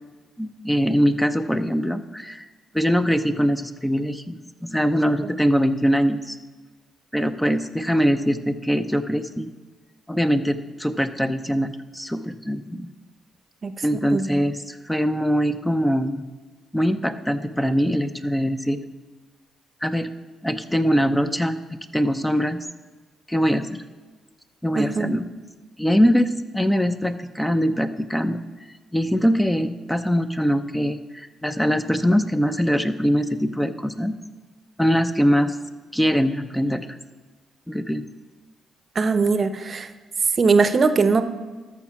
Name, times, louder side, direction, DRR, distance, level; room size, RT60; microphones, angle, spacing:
voice 1, 0.4-2.5 2.7-6.4 7.1-9.5 10.1-12.9 13.8-16.2 16.7-18.8 19.8-20.1 20.4-22.6 23.3-23.8 24.6-25.3 25.8-28.4 28.9-34.2 34.8-35.6 35.9-37.0 37.7-38.1, equal, 5° left, 9 dB, 0.7 m, -22 dB
voice 2, 13.6-14.4 24.7-25.1 38.9-39.9 40.4-41.2, right 4 dB, 50° right, 11 dB, 0.8 m, -21 dB
13.0 x 6.1 x 5.9 m, 1.3 s
supercardioid pair, 60°, 0 cm